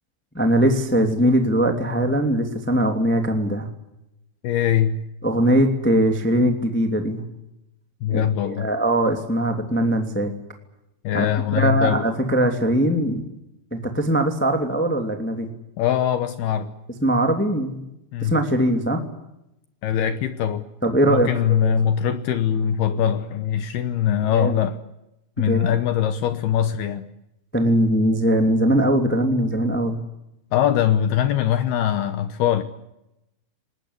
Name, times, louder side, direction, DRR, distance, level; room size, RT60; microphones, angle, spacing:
voice 1, 0.3-3.7 5.2-7.2 8.1-10.3 11.1-11.2 11.5-13.3 13.7-15.5 17.0-17.8 18.2-19.0 20.8-21.7 24.3-24.6 25.4-25.7 27.5-30.0, right 1 dB, 10° left, 4 dB, 0.6 m, -21 dB
voice 2, 4.4-5.0 8.0-8.7 11.0-12.1 15.8-16.7 18.1-18.3 19.8-20.6 21.1-24.8 25.4-27.1 30.5-32.6, left 9 dB, 80° left, 10 dB, 2.3 m, -22 dB
28.0 x 20.0 x 8.2 m, 0.88 s
omnidirectional pair, 6.0 m